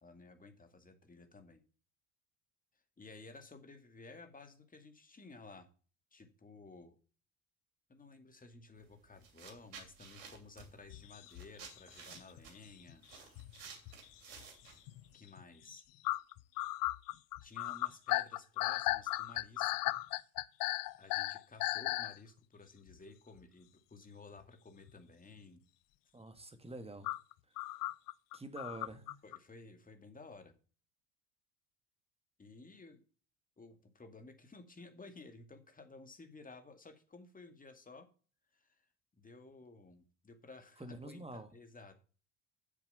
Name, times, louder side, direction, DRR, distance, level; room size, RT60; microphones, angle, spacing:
voice 1, 0.0-1.6 3.0-5.7 6.1-7.0 7.9-13.1 15.1-15.8 17.4-19.9 21.0-25.6 29.2-30.5 32.4-33.0 33.6-38.1 38.5-38.8 39.1-41.9, left 3 dB, 20° left, 7 dB, 2.1 m, -55 dB
sound 1, 8.8-8.9 9.2-15.1, right 6 dB, 70° right, 2.9 m, -54 dB
sound 2, 10.9-12.6 12.9-14.5 14.9-15.0 15.4-15.5 16.0-22.2 22.9-23.0 24.9-25.0 27.0-29.4, left 18 dB, 50° left, 0.6 m, -36 dB
voice 2, 26.1-27.1 27.7-27.8 28.3-29.2 40.8-41.5, right 2 dB, 15° right, 9 dB, 1.8 m, -47 dB
8.2 x 7.1 x 6.8 m, 0.39 s
hypercardioid pair, 65°, 42 cm